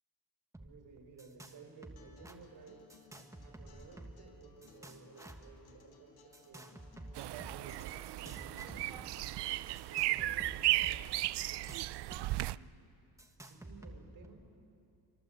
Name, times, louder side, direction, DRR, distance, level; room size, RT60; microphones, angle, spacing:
sound 1, 0.5-1.6 1.8-2.4 2.9-4.3 4.6-5.5 6.3-7.6 8.0-9.1 9.8-12.3 12.5-12.6 13.2-14.3, right 1 dB, 10° right, 1.3 m, -51 dB
voice 1, 0.6-2.8 3.4-6.8 7.3-9.5 9.9-12.7 13.4-14.5, right 4 dB, 65° right, 2 dB, 4.7 m, -56 dB
Acoustic guitar, 2.0-9.9, left 6 dB, 70° left, 2.8 m, -62 dB
sound 2, 7.2-12.6, right 17 dB, 80° right, 0.5 m, -35 dB
26.5 x 24.5 x 7.9 m, 2.7 s
cardioid pair, 170°, 40 cm